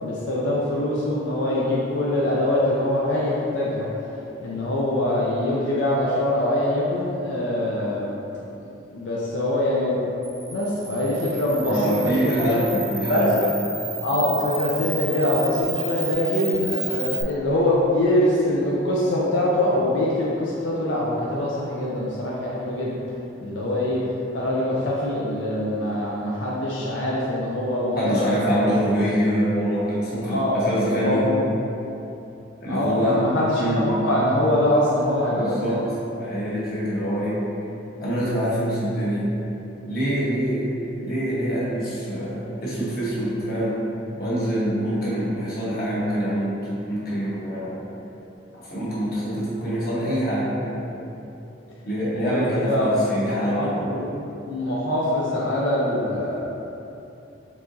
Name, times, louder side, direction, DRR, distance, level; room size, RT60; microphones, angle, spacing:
voice 1, 0.0-3.9 4.4-8.1 8.9-10.0 10.5-12.6 13.1-13.3 14.0-23.0 23.4-24.0 24.3-28.5 30.2-31.5 32.7-33.5 33.8-35.8 52.1-53.0 53.5-54.1 54.4-56.4, left 1 dB, 90° left, -6 dB, 0.6 m, -23 dB
Camera, 10.2-17.2, right 3 dB, 15° right, 0.7 m, -32 dB
voice 2, 11.6-13.4 28.0-31.2 32.6-33.2 33.6-34.0 35.3-35.8 36.2-37.4 38.0-39.3 39.9-43.8 44.2-47.8 48.5-50.8 51.8-53.9, equal, 55° left, -8 dB, 1.2 m, -25 dB
4.7 x 3.6 x 2.7 m, 2.9 s
head